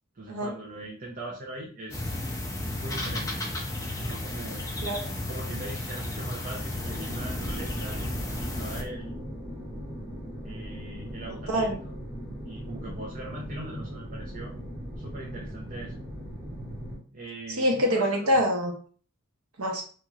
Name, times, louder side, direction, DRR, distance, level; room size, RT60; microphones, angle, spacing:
voice 1, 0.1-2.2 2.8-3.6 4.0-4.6 5.1-8.0 8.4-9.2 10.4-12.0 12.4-14.5 15.0-15.9 17.1-18.1, right 2 dB, 40° right, -2 dB, 0.6 m, -41 dB
sound 1, 1.9-8.8, left 1 dB, 15° left, 0.5 m, -33 dB
sound 2, 6.7-17.0, equal, 15° right, 0.9 m, -38 dB
voice 2, 11.3-11.8 17.5-18.7 19.6-19.8, equal, 80° right, 1 dB, 0.8 m, -25 dB
2.9 x 2.9 x 2.4 m, 0.42 s
head